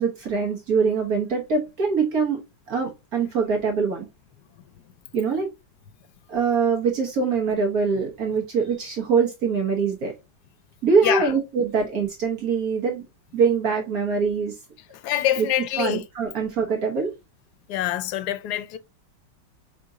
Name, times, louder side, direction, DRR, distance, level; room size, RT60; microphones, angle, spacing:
voice 1, 0.0-2.4 2.7-4.1 5.1-5.5 6.3-10.1 10.8-13.0 13.3-14.6 15.4-15.5 15.8-17.1, right 5 dB, 65° right, 1.5 m, -23 dB
voice 2, 15.0-16.0 17.7-18.8, left 12 dB, 75° left, 1.1 m, -25 dB
5.0 x 3.7 x 2.7 m
omnidirectional pair, 1.8 m